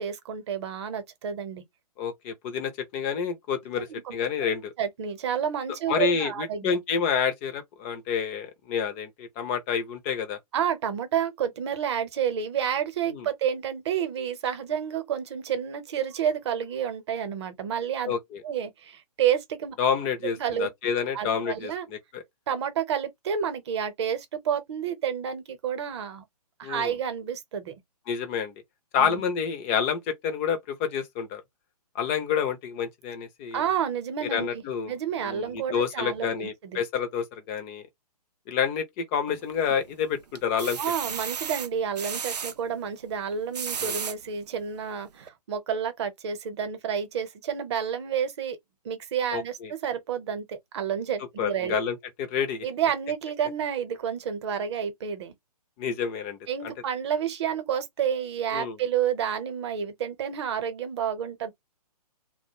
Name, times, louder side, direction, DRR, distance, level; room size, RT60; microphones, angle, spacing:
voice 1, 0.0-1.6 3.8-4.2 4.8-6.8 10.5-18.1 18.4-19.7 20.4-20.7 21.1-21.9 22.5-26.2 26.6-27.7 29.0-29.2 33.5-36.8 40.8-48.6 48.8-51.8 52.6-55.3 56.5-61.5, right 8 dB, 45° right, 0.8 m, -30 dB
voice 2, 2.0-4.7 5.9-10.4 13.1-13.3 18.0-18.4 19.8-22.2 26.6-26.9 28.1-28.5 28.9-31.4 31.9-33.6 34.3-34.9 35.2-37.8 38.5-40.8 43.8-44.0 49.3-49.7 51.4-52.7 55.8-56.4 58.5-58.8, left 7 dB, 20° left, 0.4 m, -28 dB
sound 1, 39.3-39.9 40.3-42.5 43.3-44.2 44.8-44.9 45.2-45.3, right 7 dB, 85° right, 0.5 m, -33 dB
2.3 x 2.1 x 2.8 m
figure-of-eight pair, 135°, 20 cm